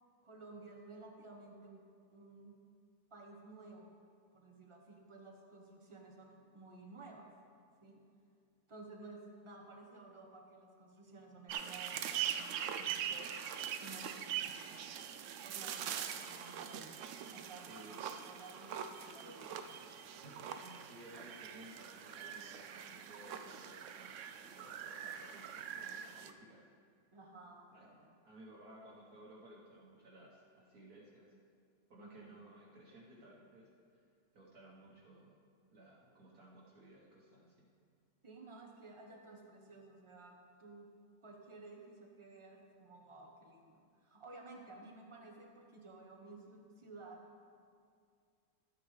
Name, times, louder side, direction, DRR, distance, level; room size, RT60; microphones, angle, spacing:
voice 1, 0.2-1.8 2.1-2.6 3.1-4.0 4.3-7.3 7.8-8.0 8.7-13.5 13.8-14.5 15.4-17.0 17.3-19.7 27.1-28.1 31.9-32.6 38.2-40.9 41.2-47.4, right 3 dB, 25° right, 0 dB, 0.8 m, -54 dB
sound 1, 11.5-26.3, right 9 dB, 85° right, 0.6 m, -43 dB
voice 2, 17.7-18.0 20.1-26.6 27.7-31.3 31.9-34.0 34.3-35.3 35.7-37.7, right 1 dB, 60° right, -5 dB, 1.6 m, -58 dB
12.5 x 8.6 x 3.2 m, 2.2 s
omnidirectional pair, 1.8 m